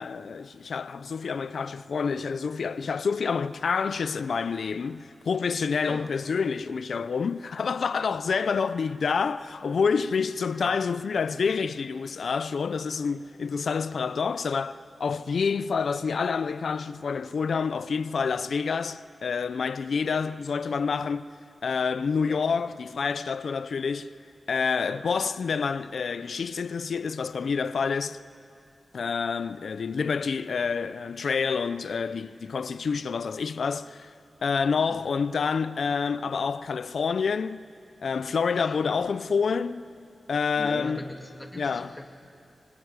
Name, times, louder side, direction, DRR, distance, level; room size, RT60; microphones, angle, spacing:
voice 1, 0.0-21.3 21.6-24.1 24.5-28.2 28.9-34.1 34.4-37.6 38.0-39.9 40.3-41.0 41.6-41.9, left 5 dB, 70° left, 0.6 m, -28 dB
voice 2, 40.6-42.1, left 1 dB, 10° left, 2.5 m, -41 dB
24.5 x 23.5 x 9.8 m
wide cardioid pair, 180°, 0 cm